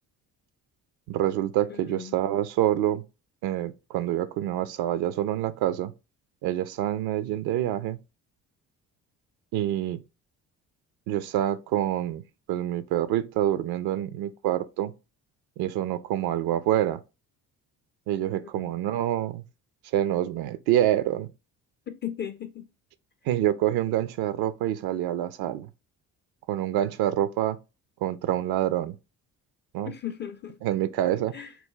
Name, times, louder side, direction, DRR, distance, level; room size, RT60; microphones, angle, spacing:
voice 1, 1.1-3.0 3.4-5.9 6.4-8.0 9.5-10.0 11.1-12.2 12.5-14.9 15.6-17.0 18.1-19.4 19.9-21.3 23.3-25.7 26.5-27.6 28.0-29.0 29.7-29.9 30.6-31.3, right 12 dB, 55° right, 0.5 m, -26 dB
voice 2, 1.7-2.2 18.3-18.7 21.9-22.7 29.8-30.6 31.3-31.6, left 10 dB, 25° left, 0.4 m, -37 dB
4.1 x 2.2 x 3.6 m
figure-of-eight pair, 45°, 48 cm